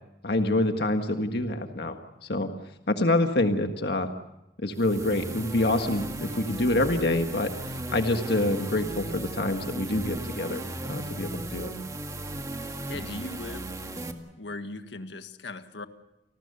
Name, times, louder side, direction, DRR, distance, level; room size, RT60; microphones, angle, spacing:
voice 1, 0.2-2.0 2.3-2.5 2.9-4.1 4.6-10.6 10.9-11.7, left 1 dB, 65° left, 5 dB, 1.7 m, -26 dB
sound 1, 4.7-14.1, right 1 dB, 20° right, 1.8 m, -36 dB
voice 2, 12.9-13.8 14.4-15.9, left 2 dB, 85° left, 8 dB, 1.7 m, -38 dB
29.0 x 19.5 x 6.9 m, 0.91 s
head